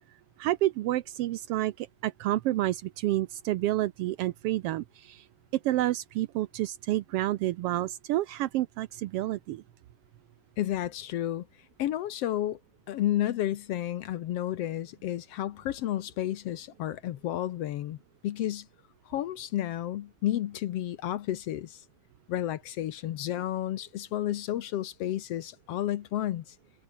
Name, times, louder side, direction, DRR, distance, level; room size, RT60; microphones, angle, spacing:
voice 1, 0.4-5.2 5.6-9.6, right 15 dB, 85° right, 1.3 m, -29 dB
voice 2, 10.6-11.5 11.8-12.6 12.9-18.0 18.2-18.7 19.1-21.8 22.3-26.5, left 12 dB, 65° left, 1.7 m, -31 dB
omnidirectional pair, 3.5 m